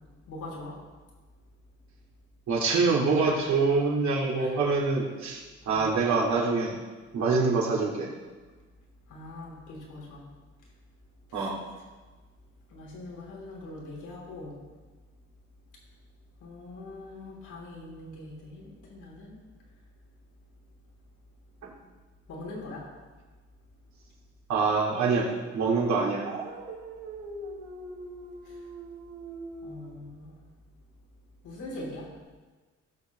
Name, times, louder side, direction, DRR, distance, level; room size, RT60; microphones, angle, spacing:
voice 1, 0.3-0.8 3.2-3.4 4.4-4.6 5.7-5.9 9.1-10.2 11.3-11.5 12.7-14.6 16.4-19.4 22.3-22.9 28.4-28.6 29.6-30.4 31.4-32.1, left 2 dB, 80° left, -3 dB, 3.4 m, -42 dB
voice 2, 2.5-6.8 7.1-8.1 11.3-11.6 21.6-21.7 24.5-26.3, right 4 dB, 70° right, -3 dB, 2.7 m, -25 dB
Dog, 26.2-29.9, right 2 dB, 85° right, 1.8 m, -41 dB
17.0 x 6.7 x 3.1 m, 1.3 s
cardioid pair, 90°, 30 cm